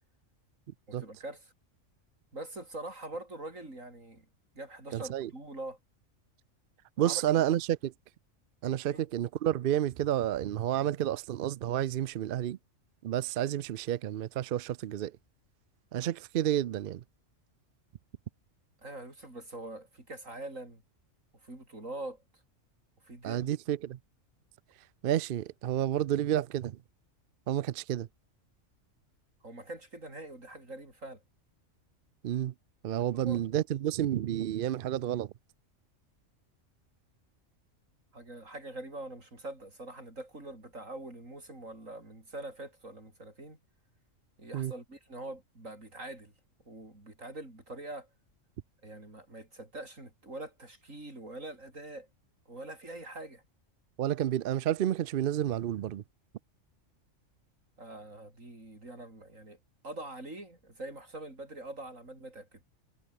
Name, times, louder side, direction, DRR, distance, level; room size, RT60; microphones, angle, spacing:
voice 1, 0.9-1.5 2.3-4.3 4.6-5.8 7.0-7.2 8.9-9.0 18.8-20.8 21.4-22.2 23.0-23.5 29.4-31.2 33.0-33.4 38.1-43.6 44.4-46.3 46.7-48.1 48.8-52.1 52.5-53.4 57.8-59.6 59.8-62.6, right 2 dB, 80° right, 7.0 m, -44 dB
voice 2, 4.9-5.3 7.0-7.9 8.6-12.6 13.0-15.1 15.9-17.0 23.2-24.0 25.0-26.8 27.5-28.1 32.2-32.5 32.8-35.3 44.5-44.7 54.0-56.0, right 11 dB, 60° right, 0.6 m, -30 dB
omnidirectional pair, 1.3 m